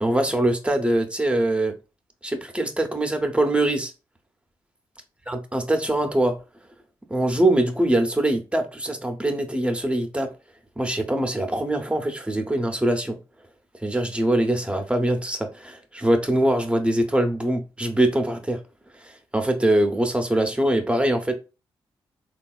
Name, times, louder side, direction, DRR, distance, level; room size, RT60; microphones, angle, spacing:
voice 1, 0.0-1.7 2.2-3.9 5.3-6.4 7.1-10.3 10.8-13.2 13.8-18.6 19.0-21.3, right 1 dB, 10° right, 0.7 m, -23 dB
3.4 x 2.3 x 2.3 m
supercardioid pair, 50°, 9 cm